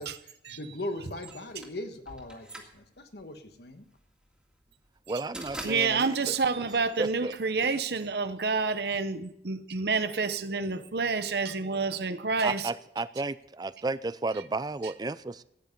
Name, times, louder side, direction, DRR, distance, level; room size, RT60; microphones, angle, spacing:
voice 1, 0.0-3.8 12.3-12.4, left 1 dB, 65° left, 1.4 m, -40 dB
sound 1, 1.3-7.4, right 1 dB, 5° right, 2.0 m, -45 dB
voice 2, 5.1-6.4 7.0-7.3 7.6-7.7 12.4-15.4, right 3 dB, 25° right, 0.4 m, -33 dB
voice 3, 5.6-12.7, right 4 dB, 65° right, 0.8 m, -28 dB
15.0 x 9.8 x 5.3 m
head